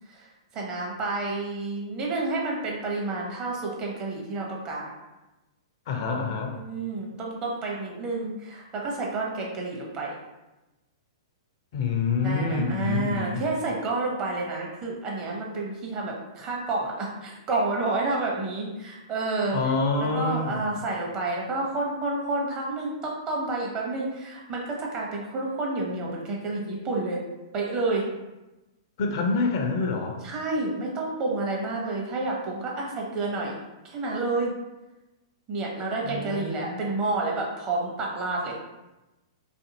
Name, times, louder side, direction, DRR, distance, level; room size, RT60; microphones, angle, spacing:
voice 1, 0.1-4.9 6.5-10.1 12.2-19.6 20.0-27.2 27.5-28.1 30.2-33.6 33.8-34.5 35.5-38.6, right 2 dB, 30° right, -2 dB, 0.7 m, -29 dB
voice 2, 5.9-6.6 11.7-13.4 19.5-20.7 29.0-30.2 36.0-36.8, left 4 dB, 55° left, 3 dB, 0.5 m, -27 dB
2.5 x 2.5 x 2.8 m, 1.0 s
figure-of-eight pair, 110°, 3 cm